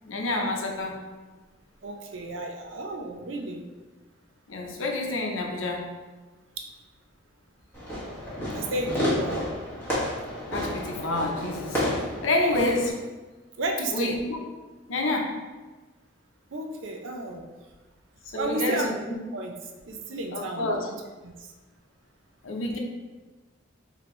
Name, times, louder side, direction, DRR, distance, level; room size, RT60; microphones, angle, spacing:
voice 1, 0.0-1.0 4.5-5.9 10.5-13.0 13.9-14.4 14.9-15.4 18.3-18.9 20.3-20.9 22.4-22.8, left 2 dB, 90° left, 1 dB, 0.7 m, -28 dB
voice 2, 1.8-3.6 6.6-6.7 8.5-9.4 13.6-14.2 16.5-17.5 18.4-18.9 19.3-19.5 19.8-20.9 21.2-21.5, right 2 dB, 75° right, 3 dB, 0.5 m, -32 dB
Fireworks, 7.7-12.9, left 1 dB, 10° left, 1.1 m, -30 dB
4.2 x 2.8 x 3.2 m, 1.2 s
head